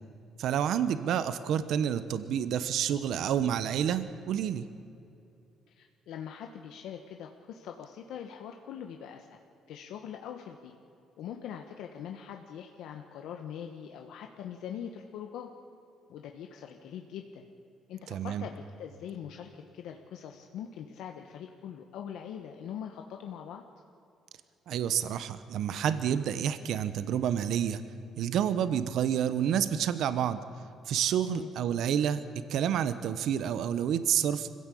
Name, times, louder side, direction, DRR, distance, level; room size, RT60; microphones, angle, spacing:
voice 1, 0.4-4.6 18.1-18.4 24.7-27.8 28.2-30.4 30.9-34.5, right 9 dB, 65° right, 12 dB, 1.0 m, -29 dB
voice 2, 5.7-9.4 9.7-10.7 11.2-15.5 16.1-17.4 17.9-23.6 31.2-31.5, left 9 dB, 80° left, 3 dB, 1.3 m, -42 dB
24.5 x 16.0 x 8.5 m, 2.6 s
cardioid pair, 140°, 0 cm